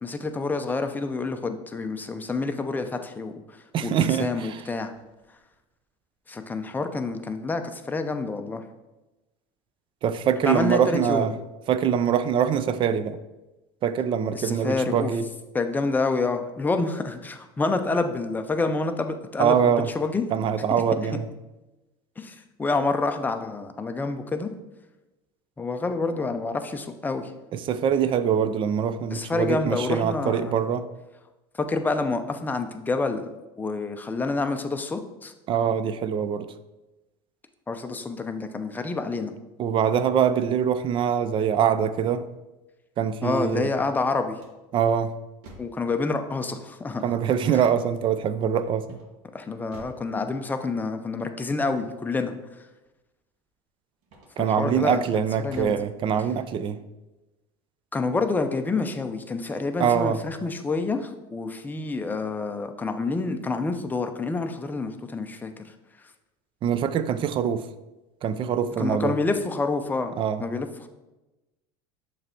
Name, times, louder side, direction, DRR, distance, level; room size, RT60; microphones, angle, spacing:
voice 1, 0.0-4.9 6.3-8.6 10.4-11.3 14.3-15.1 15.5-20.2 21.1-21.2 22.2-24.5 25.6-27.3 29.1-30.6 31.6-33.3 33.6-35.3 37.7-39.3 43.2-44.4 45.6-47.0 47.5-47.6 49.3-52.7 54.4-55.0 55.4-55.7 57.9-65.7 68.8-70.1 70.4-70.9, left 3 dB, 15° left, 0.5 m, -28 dB
voice 2, 3.7-4.6 10.0-11.3 11.7-13.2 13.8-15.3 19.4-19.9 20.3-21.3 27.5-30.9 35.5-36.5 39.6-42.3 43.0-43.7 44.7-45.2 47.0-49.0 54.4-56.8 59.8-60.2 66.6-67.7 68.2-69.1 70.2-70.4, right 8 dB, 40° right, 0.4 m, -24 dB
sound 1, 43.7-45.9 48.8-50.1 54.0-54.6 55.1-55.9, right 1 dB, 65° right, 1.6 m, -49 dB
6.5 x 3.3 x 4.4 m
supercardioid pair, 110°, 14 cm